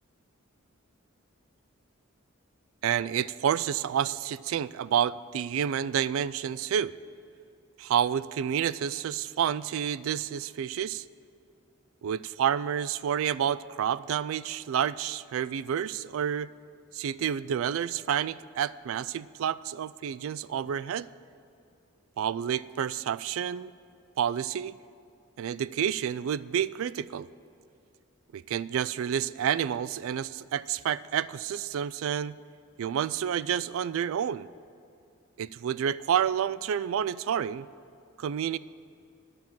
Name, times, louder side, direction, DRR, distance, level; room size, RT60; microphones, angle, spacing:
voice 1, 2.8-6.9 7.8-11.0 12.0-16.5 16.9-21.1 22.2-23.7 24.2-24.8 25.4-27.3 28.3-32.4 32.8-34.5 35.4-37.7 38.2-38.6, right 9 dB, 75° right, 18 dB, 0.3 m, -29 dB
9.9 x 7.1 x 7.6 m, 2.6 s
head